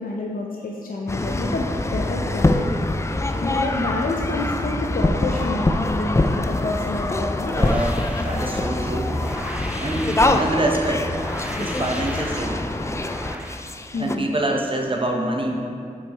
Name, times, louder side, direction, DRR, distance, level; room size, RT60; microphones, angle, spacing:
voice 1, 0.0-2.7 3.4-7.6 13.9-14.2, left 2 dB, 80° left, -2 dB, 0.6 m, -28 dB
sound 1, 1.1-14.2, left 2 dB, 20° left, 0.3 m, -24 dB
sound 2, 7.5-13.6, equal, 10° right, 0.7 m, -35 dB
voice 2, 7.5-9.1 9.8-11.1 11.5-12.8 14.0-15.7, right 1 dB, 40° right, 1 dB, 0.9 m, -26 dB
5.6 x 5.6 x 4.2 m, 2.4 s
wide cardioid pair, 65°, 14 cm